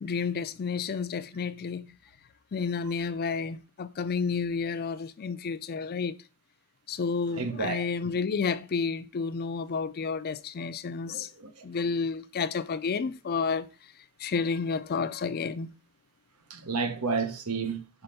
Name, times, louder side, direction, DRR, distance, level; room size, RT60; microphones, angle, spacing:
voice 1, 0.0-1.9 2.5-6.1 6.9-11.3 11.6-13.7 14.2-15.7, left 5 dB, 45° left, 0.4 m, -30 dB
voice 2, 7.3-8.1 11.1-11.7 16.5-18.0, right 5 dB, 85° right, 1.0 m, -32 dB
5.7 x 4.3 x 5.2 m
head